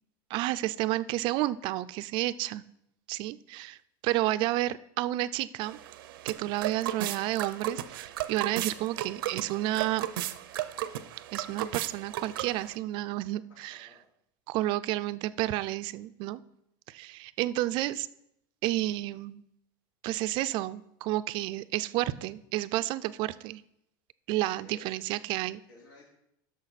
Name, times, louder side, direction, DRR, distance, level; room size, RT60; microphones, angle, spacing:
voice 1, 0.3-2.6 3.1-3.8 4.0-5.8 6.2-10.1 11.3-13.9 14.5-16.4 16.9-18.1 18.6-19.4 20.0-23.6 24.3-25.6, right 16 dB, 45° right, 14 dB, 0.4 m, -31 dB
sound 1, 5.6-12.8, right 12 dB, 85° right, 0.6 m, -35 dB
voice 2, 13.5-14.0 24.4-25.0 25.7-26.1, left 3 dB, 85° left, -6 dB, 4.0 m, -55 dB
11.0 x 6.4 x 4.1 m, 0.79 s
supercardioid pair, 145°, 11 cm